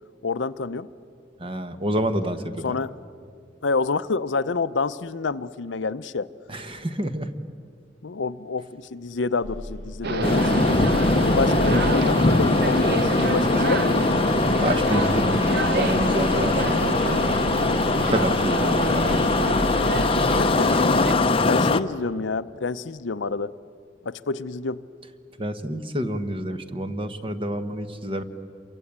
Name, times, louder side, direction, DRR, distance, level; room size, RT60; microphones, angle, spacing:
voice 1, 0.2-0.9 2.6-3.0 3.6-6.3 8.0-10.8 11.1-14.0 18.5-18.9 20.6-20.7 21.5-23.5 24.0-24.8, left 4 dB, 80° left, 13 dB, 0.7 m, -28 dB
voice 2, 1.4-2.8 6.5-7.3 14.6-17.4 18.0-19.2 25.4-28.2, right 1 dB, 30° right, 9 dB, 1.3 m, -28 dB
sound 1, 9.4-20.4, left 1 dB, 80° right, 6.2 m, -36 dB
sound 2, 10.0-21.1, right 3 dB, 60° right, 0.9 m, -29 dB
sound 3, 10.2-21.8, left 2 dB, 30° left, 0.7 m, -21 dB
28.0 x 24.0 x 8.7 m, 2.3 s
head